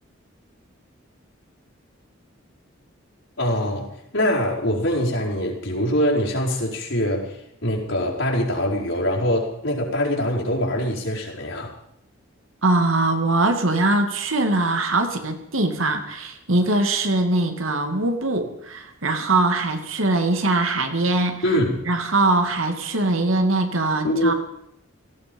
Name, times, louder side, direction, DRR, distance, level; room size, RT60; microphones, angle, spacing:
voice 1, 3.4-11.8 21.4-21.8 24.0-24.3, equal, 70° left, -2 dB, 4.6 m, -23 dB
voice 2, 12.6-21.4 21.9-24.3, right 2 dB, 85° right, 6 dB, 2.3 m, -22 dB
17.5 x 15.0 x 5.4 m, 0.77 s
head